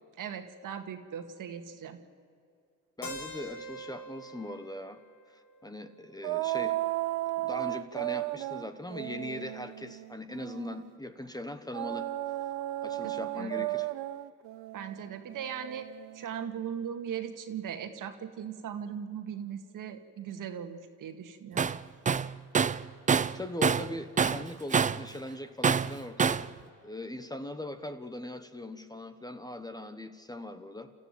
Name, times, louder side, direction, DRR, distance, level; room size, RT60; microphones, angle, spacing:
voice 1, 0.2-2.0 13.0-13.7 14.7-15.9 16.1-21.7, right 8 dB, 55° right, 7 dB, 2.1 m, -39 dB
Keyboard (musical), 3.0-6.9, equal, 55° left, 4.6 m, -46 dB
voice 2, 3.0-5.0 5.6-6.8 7.4-12.1 12.8-13.9 23.3-26.5 26.8-30.9, left 1 dB, 10° left, 9 dB, 1.2 m, -40 dB
sound 1, 6.2-10.9 11.7-16.4, right 16 dB, 75° right, 0.8 m, -35 dB
Tools, 21.6-21.8 22.1-23.9 24.2-25.1 25.6-26.5, right 6 dB, 20° right, 0.5 m, -26 dB
29.5 x 14.0 x 9.0 m, 2.4 s
supercardioid pair, 90°, 38 cm